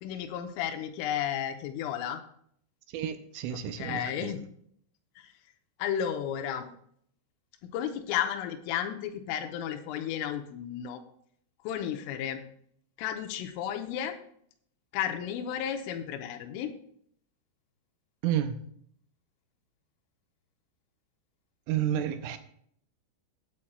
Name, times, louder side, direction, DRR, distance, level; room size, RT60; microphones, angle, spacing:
voice 1, 0.0-2.2 3.5-4.4 5.2-5.3 5.8-6.7 7.6-11.0 11.6-12.4 13.0-14.2 14.9-16.7, left 9 dB, 85° left, 3.2 m, -33 dB
voice 2, 2.9-4.3 18.2-18.6 21.7-22.4, right 10 dB, 80° right, 3.0 m, -30 dB
16.5 x 8.5 x 2.3 m
omnidirectional pair, 6.0 m